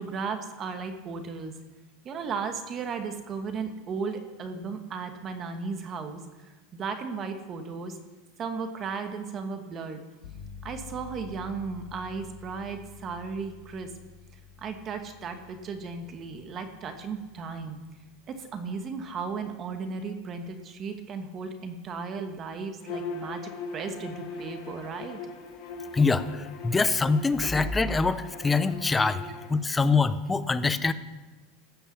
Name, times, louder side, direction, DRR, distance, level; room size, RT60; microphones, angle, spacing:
voice 1, 0.0-1.6 2.0-8.0 8.4-10.0 10.6-13.9 14.6-17.8 18.3-25.2, right 5 dB, 30° right, 6 dB, 1.2 m, -35 dB
sound 1, 10.2-20.8, left 7 dB, 85° left, 3.3 m, -49 dB
Bowed string instrument, 22.8-29.5, left 4 dB, 55° left, 3.0 m, -40 dB
voice 2, 25.9-29.2 29.5-30.9, left 4 dB, 15° left, 13 dB, 0.6 m, -24 dB
16.0 x 5.4 x 7.2 m, 1.2 s
supercardioid pair, 130°, 0 cm